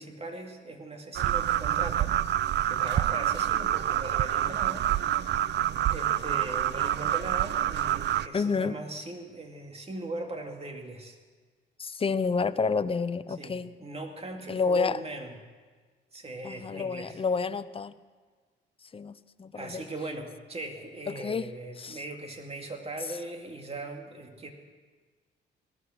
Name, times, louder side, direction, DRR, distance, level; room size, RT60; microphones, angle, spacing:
voice 1, 0.0-4.9 5.2-5.6 5.9-11.2 13.4-15.4 16.1-17.2 19.5-24.5, right 2 dB, 30° right, 3 dB, 2.4 m, -39 dB
sound 1, 1.1-8.3, right 12 dB, 60° right, 0.5 m, -27 dB
voice 2, 8.3-8.8 11.8-13.7 14.5-15.0 16.4-18.0 18.9-19.9 21.1-21.5 21.8-22.0, left 5 dB, 30° left, 13 dB, 0.7 m, -29 dB
18.0 x 13.0 x 6.2 m, 1.4 s
cardioid pair, 90°, 20 cm